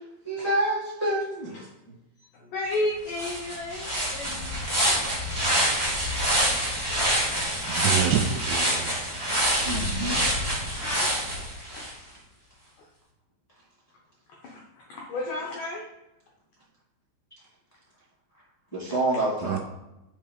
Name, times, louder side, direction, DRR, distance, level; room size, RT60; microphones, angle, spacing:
voice 1, 0.2-1.5 9.6-10.2 18.7-19.6, right 1 dB, 15° left, 1.3 m, -27 dB
voice 2, 2.2-5.1 10.8-12.1 12.8-12.9 14.3-15.9, left 2 dB, 85° left, 1.8 m, -34 dB
sound 1, 2.7-2.8 3.1-11.9, equal, 30° right, 0.4 m, -26 dB
voice 3, 7.2-9.0 19.4-19.6, right 9 dB, 80° right, 2.6 m, -28 dB
8.5 x 4.5 x 4.8 m
omnidirectional pair, 5.4 m